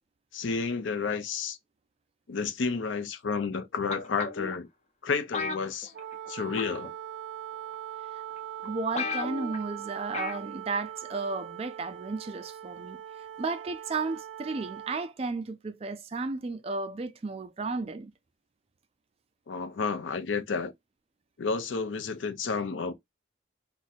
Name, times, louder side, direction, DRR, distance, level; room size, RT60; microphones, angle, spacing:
voice 1, 0.3-1.6 2.3-4.7 5.0-5.9 6.3-6.9 19.5-20.7 21.4-22.9, left 5 dB, 85° left, 0.5 m, -31 dB
sound 1, 3.9-4.6 5.3-6.3 6.6-6.9 7.7-7.8 8.4-8.5 8.6-8.7 8.9-9.6 10.1-10.5 10.8-10.9, left 4 dB, 35° left, 0.6 m, -34 dB
Wind instrument woodwind instrument, 5.9-15.1, right 11 dB, 85° right, 0.5 m, -41 dB
voice 2, 8.6-13.0 13.4-18.1, right 3 dB, 30° right, 0.3 m, -33 dB
2.6 x 2.2 x 4.0 m
head